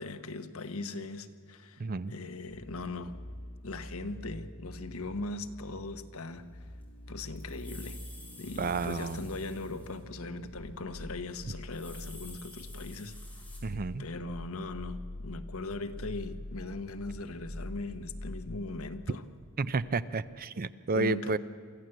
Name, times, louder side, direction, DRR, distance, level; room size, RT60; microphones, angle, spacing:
voice 1, 0.0-3.2 3.6-6.6 7.1-8.0 8.4-13.1 14.0-19.2 20.9-21.4, left 2 dB, 70° left, 9 dB, 1.1 m, -39 dB
voice 2, 1.8-2.1 8.6-9.2 13.6-14.0 19.6-21.4, right 3 dB, 40° right, 15 dB, 0.5 m, -31 dB
sound 1, 2.5-20.0 20.3-20.4, left 1 dB, 85° left, 1.4 m, -45 dB
sound 2, 6.5-6.6 6.8-10.1 10.4-10.6 11.5-13.6, left 2 dB, 5° left, 4.2 m, -51 dB
24.0 x 14.5 x 7.8 m, 2.1 s
head